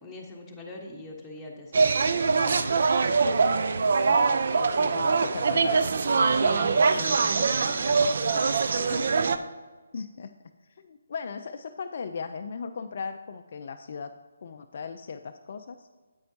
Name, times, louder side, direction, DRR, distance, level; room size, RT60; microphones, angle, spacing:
voice 1, 0.0-2.8 4.1-4.9 6.3-8.6 8.9-9.0, left 2 dB, 5° left, -4 dB, 1.2 m, -42 dB
sound 1, 1.7-9.4, right 4 dB, 50° right, 0.4 m, -23 dB
voice 2, 4.6-5.9 9.9-10.3 10.8-14.1 14.4-15.9, left 5 dB, 45° left, 7 dB, 0.4 m, -37 dB
9.3 x 8.5 x 2.8 m, 1.4 s
figure-of-eight pair, 145°, 0 cm